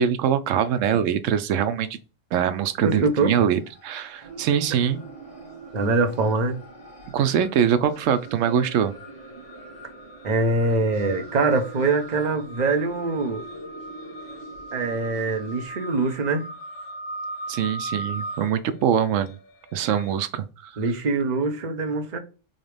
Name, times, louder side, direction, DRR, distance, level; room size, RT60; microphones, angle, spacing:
voice 1, 0.0-1.9 2.3-5.0 7.1-8.9 17.5-19.4 19.7-20.7, right 8 dB, 85° right, 0.9 m, -23 dB
sound 1, 2.7-3.3 3.5-20.1, right 1 dB, 45° left, 1.2 m, -41 dB
voice 2, 2.8-3.4 5.7-6.6 10.2-13.5 14.7-16.5 20.8-22.2, right 3 dB, 40° right, 0.8 m, -23 dB
sound 2, 4.2-15.7, right 2 dB, 60° right, 1.9 m, -44 dB
4.0 x 3.3 x 3.2 m
omnidirectional pair, 1.3 m